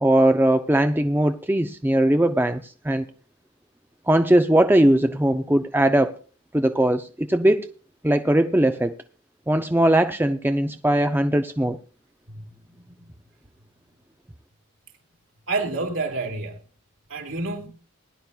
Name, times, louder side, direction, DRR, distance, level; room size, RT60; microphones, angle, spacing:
voice 1, 0.0-3.1 4.1-6.1 6.5-7.7 8.0-9.0 9.5-11.8, right 1 dB, 10° right, 0.5 m, -20 dB
voice 2, 12.8-13.1 15.5-16.6 17.1-17.7, right 3 dB, 65° right, 3.1 m, -29 dB
20.5 x 11.0 x 2.3 m
head